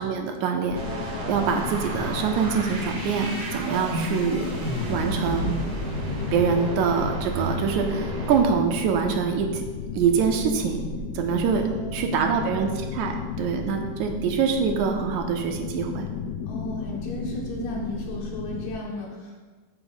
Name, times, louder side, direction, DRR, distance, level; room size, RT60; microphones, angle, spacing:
voice 1, 0.0-4.5 4.9-5.5 6.3-9.6 9.9-10.8 11.1-11.6 11.9-16.1, right 6 dB, 75° right, 4 dB, 2.0 m, -25 dB
sound 1, 0.7-18.8, left 5 dB, 90° left, 2.2 m, -34 dB
sound 2, 0.7-8.4, equal, 50° right, 1.2 m, -32 dB
voice 2, 11.5-12.5 12.8-12.9 16.5-19.4, equal, 60° left, -3 dB, 2.5 m, -35 dB
7.0 x 4.8 x 7.0 m, 1.4 s
omnidirectional pair, 3.6 m